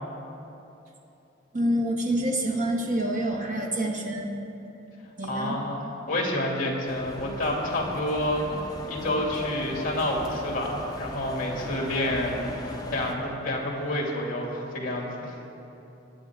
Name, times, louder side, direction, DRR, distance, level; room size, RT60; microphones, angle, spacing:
voice 1, 1.5-4.4 5.2-5.6, right 1 dB, 40° right, 0 dB, 1.5 m, -27 dB
voice 2, 5.3-8.4 8.9-15.4, left 1 dB, 45° left, -1 dB, 2.5 m, -29 dB
sound 1, 6.9-13.1, left 1 dB, 20° left, 0.9 m, -37 dB
21.5 x 9.0 x 3.6 m, 2.9 s
head